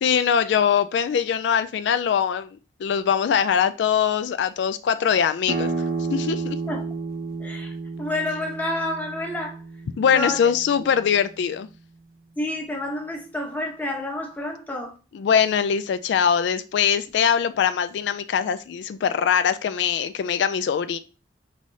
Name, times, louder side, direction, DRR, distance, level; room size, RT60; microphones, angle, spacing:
voice 1, 0.0-5.7 6.1-6.6 10.0-11.7 15.1-21.0, left 7 dB, 80° left, 0.3 m, -22 dB
sound 1, 5.5-10.8, right 3 dB, 50° right, 0.6 m, -31 dB
voice 2, 7.4-9.6 10.1-10.4 12.4-15.0, left 1 dB, 10° left, 0.8 m, -29 dB
5.3 x 3.1 x 2.7 m
head